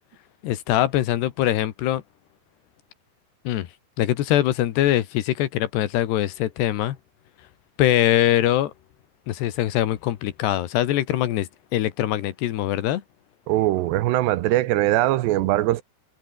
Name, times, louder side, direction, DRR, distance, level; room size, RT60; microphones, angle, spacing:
voice 1, 0.4-2.0 3.5-3.7 4.0-7.0 7.8-8.7 9.3-13.0, left 13 dB, 75° left, 3.5 m, -22 dB
voice 2, 13.5-15.8, right 15 dB, 75° right, 3.1 m, -21 dB
omnidirectional pair, 5.0 m